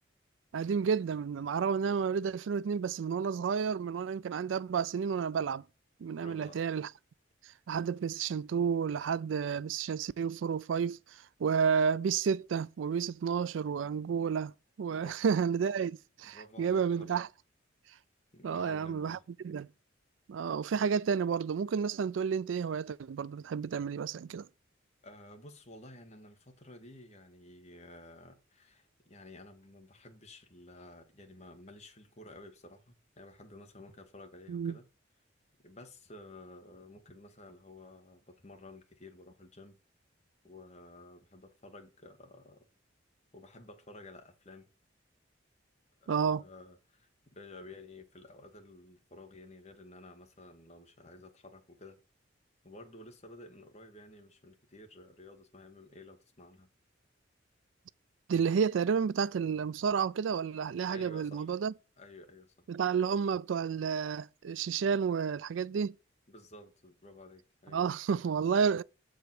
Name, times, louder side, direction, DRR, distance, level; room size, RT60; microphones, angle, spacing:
voice 1, 0.5-5.6 6.0-6.9 7.7-11.0 11.4-14.5 14.8-17.3 18.4-19.2 19.4-19.7 20.3-24.5 34.5-34.8 46.1-46.4 58.3-61.7 62.7-65.9 67.7-68.8, right 6 dB, 75° right, 0.4 m, -31 dB
voice 2, 6.1-6.6 13.8-13.9 14.9-15.4 16.2-17.2 18.3-19.2 25.0-34.9 35.6-39.8 40.4-42.7 43.3-44.7 46.0-52.0 52.6-56.7 60.9-61.5 62.0-62.7 66.3-67.8, left 2 dB, 35° left, 1.4 m, -52 dB
6.9 x 5.0 x 5.9 m
head